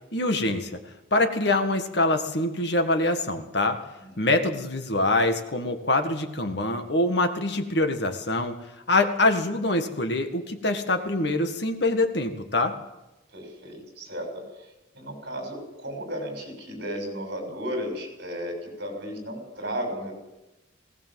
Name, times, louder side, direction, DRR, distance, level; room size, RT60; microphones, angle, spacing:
voice 1, 0.1-0.8 1.1-3.8 4.2-8.6 8.9-12.8, left 2 dB, 60° left, 6 dB, 1.8 m, -24 dB
voice 2, 4.0-4.3 13.3-14.3 14.9-20.1, equal, 55° right, 2 dB, 6.8 m, -34 dB
20.5 x 18.0 x 7.7 m, 0.98 s
head